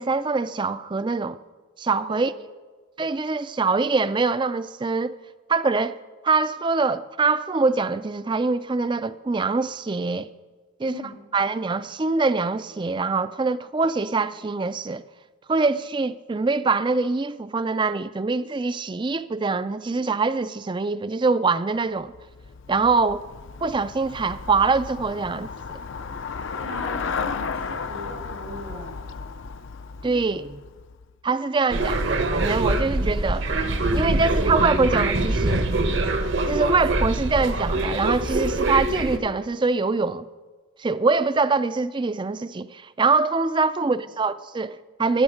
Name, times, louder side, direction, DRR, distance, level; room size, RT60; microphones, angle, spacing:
voice 1, 0.0-1.4 1.8-2.3 3.0-5.2 5.5-6.0 6.2-10.3 10.8-11.0 11.3-15.0 15.5-22.1 22.7-23.2 23.6-25.5 30.0-30.6 31.2-33.5 33.9-35.7 36.5-40.3 40.8-45.2, right 4 dB, 20° right, 0.3 m, -24 dB
voice 2, 10.8-11.1 26.6-29.0 43.8-43.9, left 1 dB, 85° right, 5.1 m, -38 dB
Traffic noise roadway noise / Bicycle, 22.0-31.2, left 5 dB, 55° left, 0.5 m, -34 dB
sound 1, 31.7-39.2, right 2 dB, 55° right, 1.0 m, -24 dB
21.0 x 7.2 x 6.4 m
head